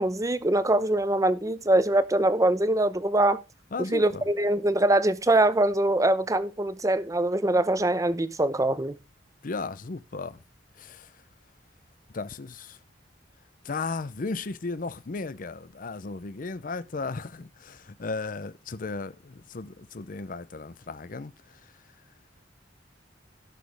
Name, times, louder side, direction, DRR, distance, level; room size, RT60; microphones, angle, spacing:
voice 1, 0.0-3.4 3.9-9.0, right 1 dB, 20° right, 0.8 m, -23 dB
voice 2, 3.7-4.2 9.4-10.4 10.8-11.1 12.1-12.8 13.6-21.3, left 3 dB, 50° left, 0.6 m, -35 dB
17.0 x 6.4 x 3.4 m
head